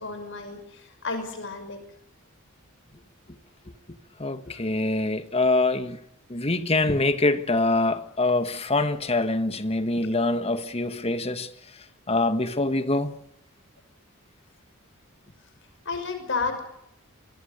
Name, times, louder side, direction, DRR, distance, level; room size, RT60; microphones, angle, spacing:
voice 1, 0.0-1.8 4.5-4.6 15.8-16.6, left 4 dB, 55° left, 5.7 m, -32 dB
voice 2, 4.2-6.0 6.3-11.5 12.1-13.1, left 2 dB, 25° left, 1.7 m, -24 dB
26.5 x 24.0 x 6.7 m
head